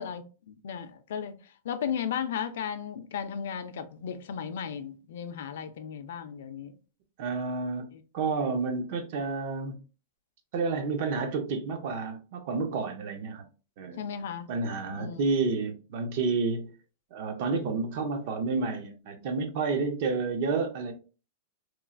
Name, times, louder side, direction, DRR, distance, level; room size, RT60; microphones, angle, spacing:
voice 1, 0.0-1.4 1.6-6.7 14.0-14.5 14.9-15.3, left 8 dB, 65° left, 0.4 m, -35 dB
voice 2, 7.2-9.8 10.5-13.5 13.8-14.0 14.5-16.7 17.1-20.9, right 4 dB, 45° right, 0.5 m, -30 dB
3.0 x 2.3 x 2.4 m
supercardioid pair, 175°, 0 cm